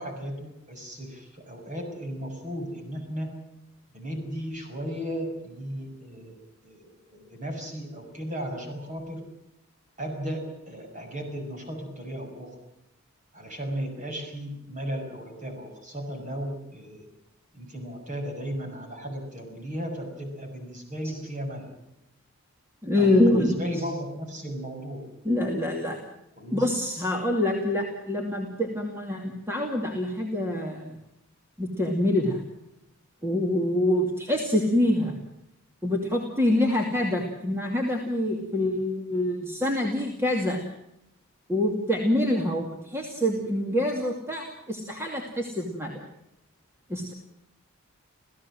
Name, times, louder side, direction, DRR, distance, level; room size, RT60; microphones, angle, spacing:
voice 1, 0.0-3.3 3.9-6.4 6.6-9.2 10.0-12.5 13.3-17.1 17.5-21.7 22.9-25.0 26.4-26.6, equal, 35° right, 3 dB, 6.6 m, -35 dB
voice 2, 22.8-23.8 25.2-26.0 26.5-30.9 31.6-32.4 33.2-35.2 35.8-40.6 41.5-46.1 46.9-47.1, left 1 dB, 10° right, 1 dB, 2.5 m, -26 dB
28.0 x 16.5 x 7.6 m, 0.85 s
head